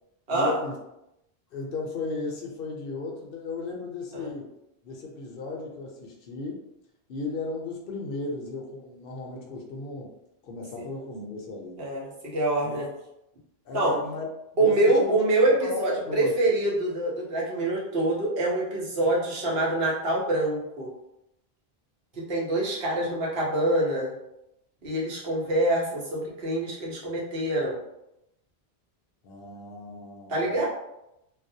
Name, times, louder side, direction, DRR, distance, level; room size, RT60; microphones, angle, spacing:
voice 1, 0.3-0.8 1.5-4.5 4.8-6.6 7.1-10.1 10.4-11.8 12.6-12.9 13.6-15.2 15.6-16.3 29.2-30.6, left 3 dB, 70° left, 0 dB, 0.7 m, -35 dB
voice 2, 11.8-12.9 13.7-14.0 14.6-20.9 22.2-24.1 24.8-27.8 30.3-30.6, right 1 dB, 70° right, -4 dB, 1.0 m, -25 dB
2.3 x 2.0 x 2.6 m, 0.86 s
omnidirectional pair, 1.0 m